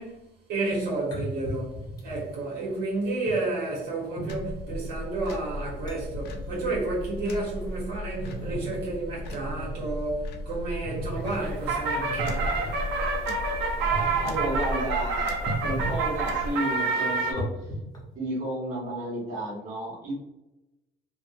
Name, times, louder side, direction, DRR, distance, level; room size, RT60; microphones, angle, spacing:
voice 1, 0.0-12.5, right 2 dB, 70° right, 1.1 m, -31 dB
sound 1, 1.1-2.3 3.3-3.4 4.2-4.8 5.4-5.5 5.9-6.0 6.3-6.6 7.1-8.9 9.2-10.0 10.8-11.3 11.9-12.7 13.7-14.5 15.5-16.0 16.4-18.2, right 1 dB, 20° left, 0.7 m, -36 dB
sound 2, 4.3-16.5, equal, 85° left, 0.5 m, -36 dB
sound 3, 11.2-17.3, right 3 dB, 85° right, 0.5 m, -28 dB
voice 2, 14.2-15.4 15.6-17.5 18.1-20.1, right 1 dB, 45° right, 1.1 m, -32 dB
2.6 x 2.2 x 2.4 m
cardioid pair, 110°, 17 cm